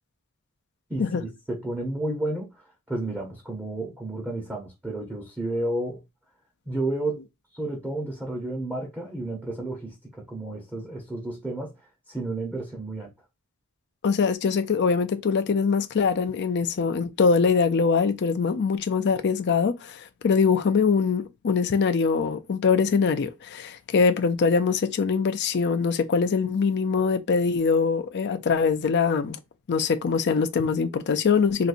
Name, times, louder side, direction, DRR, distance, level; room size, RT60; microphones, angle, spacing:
voice 1, 0.9-2.5 2.9-6.0 6.7-7.2 7.5-11.7 12.1-13.1, right 2 dB, 10° right, 0.8 m, -31 dB
voice 2, 14.0-29.4 29.7-31.7, left 5 dB, 50° left, 0.4 m, -23 dB
4.0 x 2.6 x 2.5 m
head